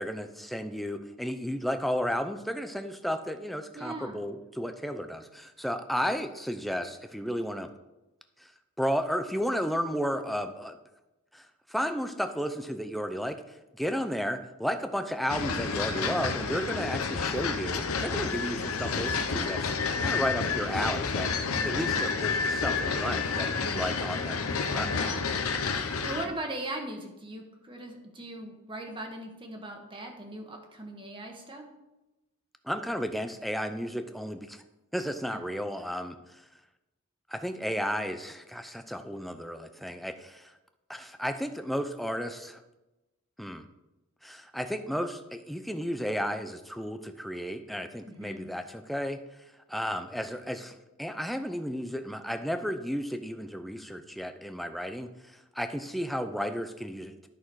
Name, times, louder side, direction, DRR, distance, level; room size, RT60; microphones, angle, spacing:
voice 1, 0.0-7.7 8.4-8.5 8.8-10.8 11.3-13.4 13.7-19.7 20.0-21.3 21.6-24.4 24.7-25.1 32.6-34.6 34.9-36.4 37.3-40.5 40.9-42.6 43.4-43.6 44.2-49.2 49.7-57.3, equal, ahead, 7 dB, 0.6 m, -33 dB
voice 2, 3.7-4.2 24.8-25.4 25.8-31.7 35.3-35.4 48.1-48.5, right 1 dB, 25° right, 2 dB, 1.5 m, -39 dB
sound 1, 15.3-26.3, left 5 dB, 85° left, 0.9 m, -30 dB
11.5 x 6.3 x 4.8 m, 1.0 s
head